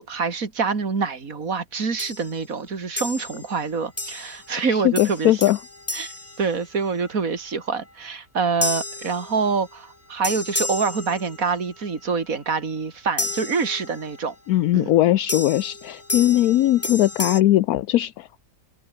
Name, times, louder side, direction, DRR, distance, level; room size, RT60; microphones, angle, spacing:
voice 1, 0.0-5.4 5.9-6.1 6.4-14.3 14.7-14.9, right 5 dB, 60° right, 3.1 m, -26 dB
sound 1, 2.0-2.4 3.0-3.5 4.0-4.5 4.9-7.1 8.6-9.8 10.2-11.7 13.2-14.2 15.3-17.4, left 2 dB, 10° left, 1.0 m, -32 dB
voice 2, 4.7-5.6 14.5-18.4, left 14 dB, 75° left, 1.1 m, -19 dB
open air
omnidirectional pair, 1.6 m